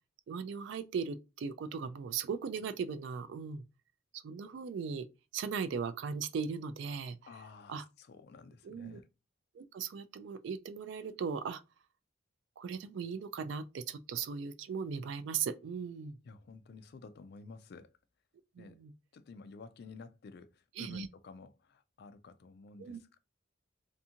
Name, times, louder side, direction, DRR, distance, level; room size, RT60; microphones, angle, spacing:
voice 1, 0.3-3.6 4.1-5.1 5.3-7.2 7.7-7.8 8.6-9.0 9.6-11.6 12.6-16.1 18.6-18.9 20.8-21.1 22.8-23.0, right 6 dB, 65° right, 0.3 m, -38 dB
voice 2, 7.2-9.1 16.2-17.9 18.6-18.8 19.1-23.2, left 4 dB, 55° left, 0.3 m, -52 dB
2.5 x 2.4 x 2.7 m
head